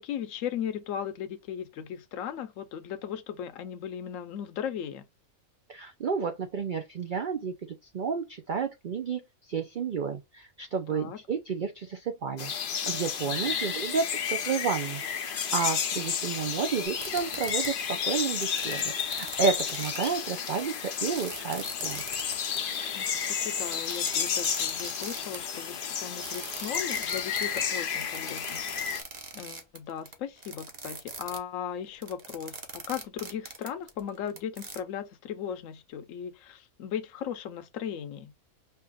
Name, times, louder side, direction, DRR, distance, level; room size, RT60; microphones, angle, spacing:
voice 1, 0.0-5.1 10.9-11.2 13.2-13.6 22.9-28.6 29.3-38.3, left 8 dB, 70° left, 1.0 m, -37 dB
voice 2, 5.7-9.2 9.5-12.5 12.9-22.0, right 5 dB, 60° right, 0.5 m, -31 dB
sound 1, 12.4-29.0, left 7 dB, 55° left, 0.6 m, -32 dB
sound 2, 16.8-31.4 31.9-34.8, right 4 dB, 35° right, 0.8 m, -41 dB
5.5 x 2.8 x 2.3 m
omnidirectional pair, 1.5 m